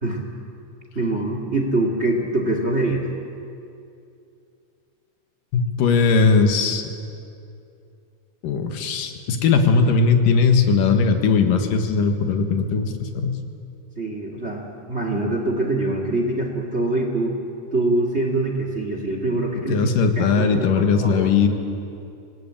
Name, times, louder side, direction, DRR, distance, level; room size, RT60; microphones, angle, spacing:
voice 1, 1.0-3.0 14.0-17.4 17.7-19.8 20.2-21.3, right 2 dB, 25° right, 3 dB, 2.0 m, -24 dB
voice 2, 5.5-6.9 8.4-13.4 19.7-21.5, left 5 dB, 80° left, 6 dB, 3.1 m, -19 dB
26.0 x 19.0 x 8.8 m, 2.5 s
omnidirectional pair, 3.8 m